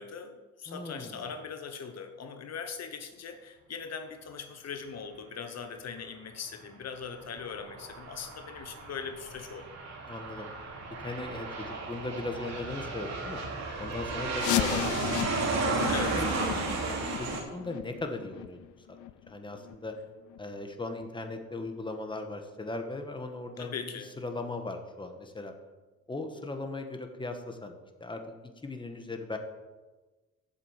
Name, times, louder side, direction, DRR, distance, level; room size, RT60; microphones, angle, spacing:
voice 1, 0.0-9.8 15.8-16.2 23.6-24.1, left 6 dB, 60° left, 7 dB, 1.1 m, -40 dB
voice 2, 0.7-1.2 10.1-10.5 11.0-13.4 13.8-15.2 15.6-15.9 16.1-18.6 19.3-19.9 20.4-23.8 24.2-25.5 26.1-27.7 28.0-28.2 28.6-29.4, left 2 dB, 15° left, 5 dB, 1.5 m, -38 dB
Aircraft, 7.2-17.4, right 3 dB, 65° right, 2.9 m, -34 dB
sound 1, 14.3-19.9 20.3-20.4 20.9-21.0 21.6-21.7 22.3-22.4, left 15 dB, 75° left, 0.5 m, -35 dB
8.3 x 7.6 x 7.5 m, 1.2 s
cardioid pair, 90°, 30 cm